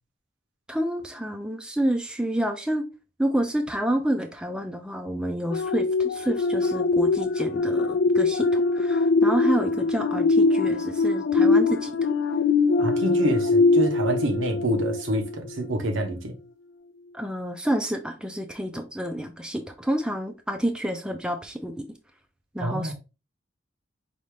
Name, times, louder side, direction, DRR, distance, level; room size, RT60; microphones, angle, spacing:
voice 1, 0.7-2.8 3.2-11.9 17.1-21.8 22.5-22.9, right 1 dB, 5° right, 0.4 m, -29 dB
sound 1, 5.5-15.4 15.8-16.0, left 3 dB, 65° left, 0.4 m, -22 dB
voice 2, 12.8-16.4 22.6-22.9, right 1 dB, 80° right, 1.1 m, -27 dB
5.3 x 2.5 x 3.2 m
head